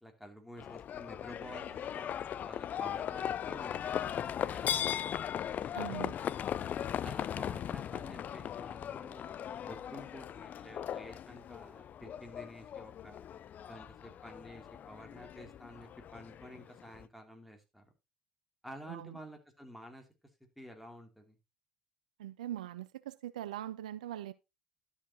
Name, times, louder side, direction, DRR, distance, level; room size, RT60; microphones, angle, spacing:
voice 1, 0.0-3.7 4.0-5.2 6.5-6.6 7.0-9.4 9.7-13.2 13.6-17.9 18.6-20.1 20.6-21.4, equal, ahead, 3.1 m, -51 dB
Livestock farm animals working animals, 0.6-17.1, left 9 dB, 45° left, 0.4 m, -38 dB
voice 2, 5.7-6.2 18.9-19.2 22.2-24.3, right 12 dB, 80° right, 0.4 m, -41 dB
12.0 x 7.1 x 3.0 m
hypercardioid pair, 60°, 4 cm